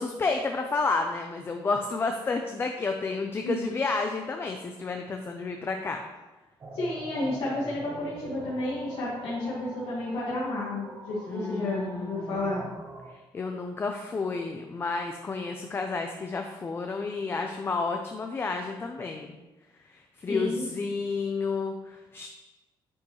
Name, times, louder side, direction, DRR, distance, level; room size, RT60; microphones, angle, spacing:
voice 1, 0.0-6.0 11.3-12.4 13.3-19.4 19.9-22.3, left 4 dB, 25° left, 4 dB, 0.5 m, -31 dB
sound 1, 6.6-13.1, right 2 dB, 30° right, 1.0 m, -42 dB
voice 2, 6.7-12.6 20.3-20.7, left 2 dB, 80° left, -8 dB, 1.6 m, -31 dB
9.2 x 5.2 x 3.0 m, 1.1 s
cardioid pair, 160°, 9 cm